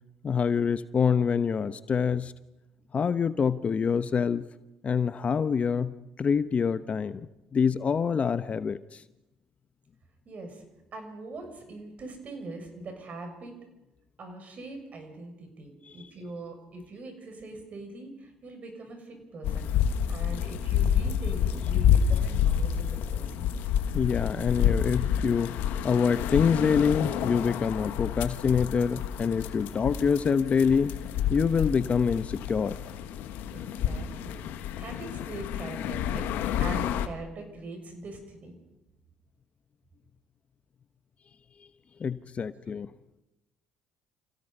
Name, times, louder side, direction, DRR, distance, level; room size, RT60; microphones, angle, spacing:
voice 1, 0.2-2.3 2.9-4.4 4.8-5.9 6.2-7.2 7.5-8.8 23.9-25.6 25.8-30.9 31.3-32.7 42.0-42.9, left 6 dB, 40° left, 13 dB, 0.9 m, -25 dB
voice 2, 10.2-10.6 10.9-13.5 14.2-19.7 20.1-23.5 33.5-34.5 34.8-36.3 36.6-38.6, right 2 dB, 50° right, 5 dB, 6.7 m, -42 dB
sound 1, 19.4-37.1, left 9 dB, 75° left, 1.3 m, -29 dB
28.5 x 16.5 x 5.6 m, 0.98 s
supercardioid pair, 70°, 3 cm